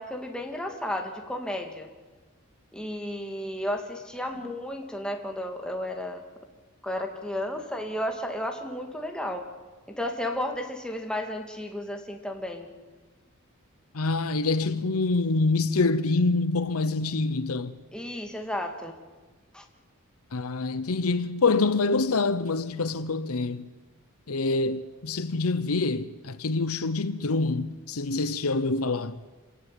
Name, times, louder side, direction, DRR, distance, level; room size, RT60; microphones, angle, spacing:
voice 1, 0.0-1.9 2.7-6.2 6.8-9.5 9.9-12.7 17.9-19.0 19.5-19.7, left 1 dB, 5° left, 2.6 m, -33 dB
voice 2, 13.9-17.7 20.3-23.7 24.3-29.2, left 3 dB, 75° left, 0.9 m, -26 dB
26.5 x 16.5 x 9.1 m
head